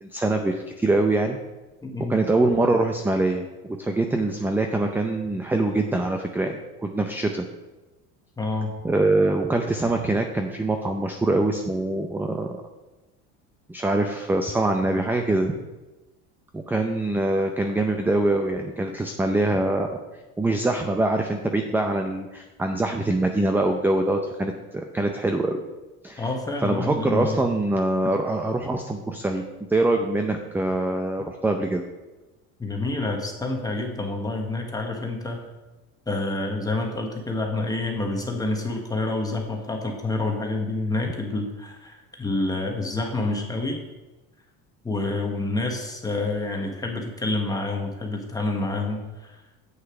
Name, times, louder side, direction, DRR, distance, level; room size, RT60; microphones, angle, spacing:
voice 1, 0.0-1.4 2.1-3.5 3.8-7.5 8.8-12.5 13.7-15.5 16.5-19.9 20.4-25.6 26.0-26.3 26.6-29.4 29.7-31.9, right 2 dB, 5° right, 4 dB, 0.5 m, -24 dB
voice 2, 1.8-2.2 8.4-8.7 26.2-27.4 32.6-35.4 36.1-43.8 44.8-49.4, left 2 dB, 15° left, 1 dB, 1.3 m, -28 dB
8.1 x 6.3 x 4.9 m, 1.1 s
cardioid pair, 120°, 29 cm